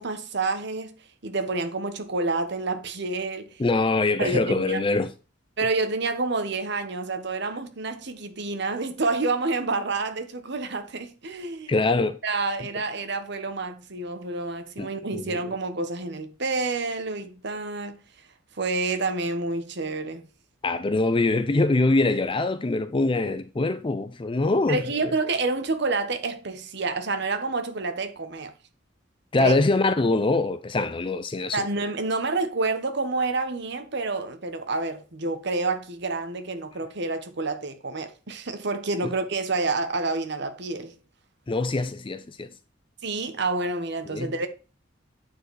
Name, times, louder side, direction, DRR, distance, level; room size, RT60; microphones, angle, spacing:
voice 1, 0.0-3.6 4.2-4.8 5.6-11.7 12.2-18.0 18.6-20.2 24.7-28.5 29.4-29.5 31.5-40.9 43.0-44.5, right 3 dB, 60° right, 1.2 m, -28 dB
voice 2, 3.6-5.1 11.7-12.2 14.8-15.4 20.6-24.8 29.3-31.7 41.5-42.5 44.1-44.5, left 2 dB, 25° left, 0.5 m, -24 dB
8.9 x 4.8 x 4.8 m
head